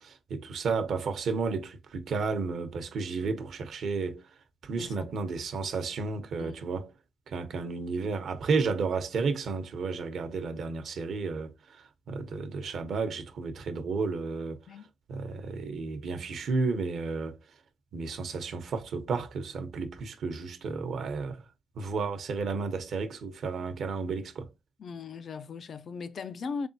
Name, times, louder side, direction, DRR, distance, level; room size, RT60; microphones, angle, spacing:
voice 1, 0.0-4.2 4.6-6.9 7.3-14.6 15.1-17.4 17.9-21.4 21.7-24.5, right 4 dB, 65° right, 0.8 m, -32 dB
voice 2, 4.7-5.1 6.4-6.5 14.7-14.9 24.8-26.7, left 5 dB, 50° left, 0.4 m, -38 dB
3.7 x 3.4 x 2.7 m
cardioid pair, 80°, 0 cm